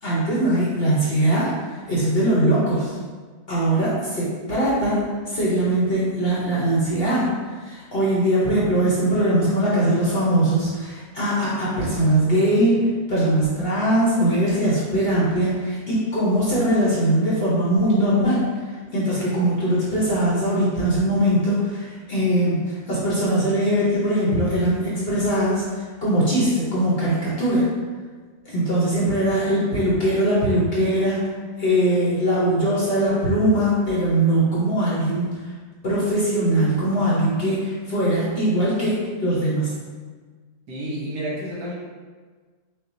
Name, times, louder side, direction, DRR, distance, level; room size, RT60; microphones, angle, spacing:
voice 1, 0.0-3.0 3.5-7.3 7.6-18.5 18.9-27.7 28.5-31.3 31.6-35.3 35.8-39.7, right 1 dB, 45° left, -7 dB, 0.9 m, -21 dB
voice 2, 40.7-41.7, equal, 80° right, -5 dB, 1.6 m, -30 dB
5.9 x 2.3 x 2.6 m, 1.5 s
omnidirectional pair, 1.7 m